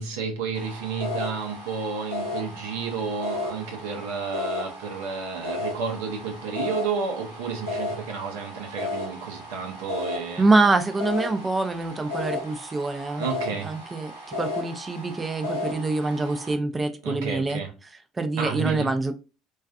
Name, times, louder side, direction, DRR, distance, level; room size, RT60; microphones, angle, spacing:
voice 1, 0.0-10.4 13.1-13.8 17.0-17.7 18.4-18.9, right 5 dB, 70° right, 0.6 m, -31 dB
sound 1, 0.5-16.5, left 2 dB, 90° right, 1.0 m, -34 dB
voice 2, 10.4-13.3 13.6-14.1 14.4-17.6 18.2-19.2, right 3 dB, 20° right, 0.5 m, -25 dB
2.4 x 2.3 x 2.3 m
figure-of-eight pair, 60°, 0 cm